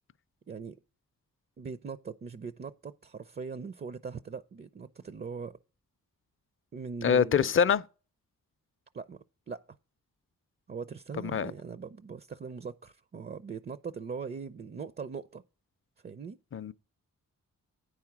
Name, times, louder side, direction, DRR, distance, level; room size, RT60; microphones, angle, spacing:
voice 1, 0.5-0.8 1.6-5.6 6.7-7.5 8.9-9.6 10.7-15.4 16.0-16.4, right 5 dB, 30° right, 0.4 m, -41 dB
voice 2, 7.0-7.8 11.2-11.5 16.5-16.7, left 7 dB, 40° left, 0.5 m, -25 dB
9.3 x 4.9 x 5.8 m
cardioid pair, 65°, 34 cm